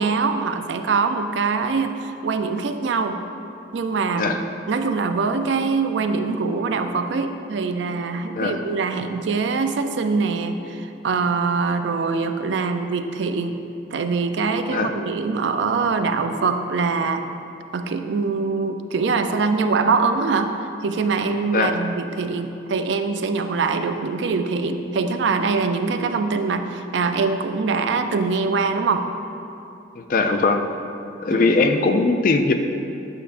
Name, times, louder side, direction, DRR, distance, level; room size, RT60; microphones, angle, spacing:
voice 1, 0.0-3.2 3.7-4.4 4.7-13.6 13.9-17.2 17.7-29.0 31.3-31.5, right 4 dB, 70° right, 7 dB, 0.4 m, -23 dB
voice 2, 30.0-30.7 31.2-32.5, left 3 dB, 45° left, 6 dB, 0.3 m, -20 dB
8.8 x 6.5 x 2.5 m, 2.7 s
head